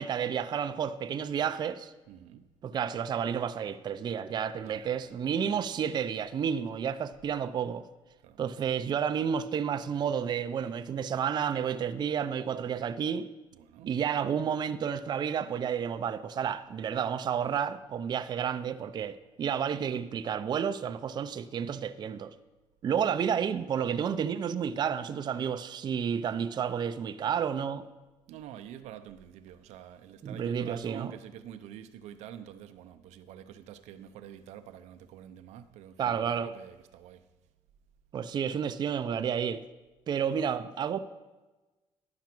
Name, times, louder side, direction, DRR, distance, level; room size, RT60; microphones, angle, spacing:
voice 1, 0.0-1.9 2.6-7.9 8.4-13.3 13.8-22.3 22.8-27.9 30.2-31.1 36.0-36.5 38.1-39.6 40.1-41.0, right 8 dB, 40° right, 0.4 m, -31 dB
voice 2, 2.1-2.5 4.6-5.1 8.2-8.4 13.5-13.9 28.3-37.2, right 10 dB, 85° right, 0.6 m, -47 dB
10.5 x 5.8 x 6.0 m
cardioid pair, 115°, 11 cm